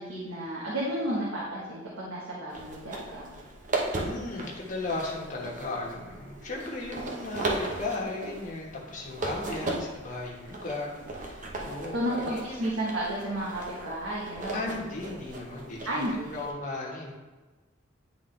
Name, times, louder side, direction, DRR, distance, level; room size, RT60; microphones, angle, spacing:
voice 1, 0.0-3.3 11.9-14.6 15.8-16.4, right 1 dB, 85° right, -6 dB, 1.2 m, -32 dB
sound 1, 2.5-16.5, right 2 dB, 40° right, 0.9 m, -37 dB
voice 2, 4.0-12.9 14.5-17.1, left 2 dB, 40° left, -3 dB, 1.2 m, -36 dB
9.4 x 3.6 x 3.2 m, 1.2 s
head